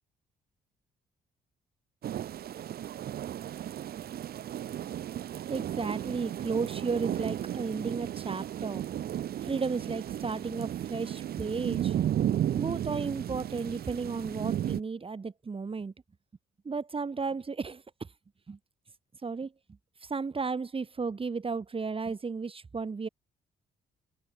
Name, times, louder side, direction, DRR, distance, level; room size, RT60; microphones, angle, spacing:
sound 1, 2.0-14.8, right 11 dB, 65° right, 1.4 m, -34 dB
voice 1, 5.5-8.8 9.4-11.9 12.5-15.9 16.6-17.8 18.5-18.6 19.2-19.5 20.0-23.1, right 4 dB, 30° right, 3.2 m, -34 dB
cardioid pair, 75°, 17 cm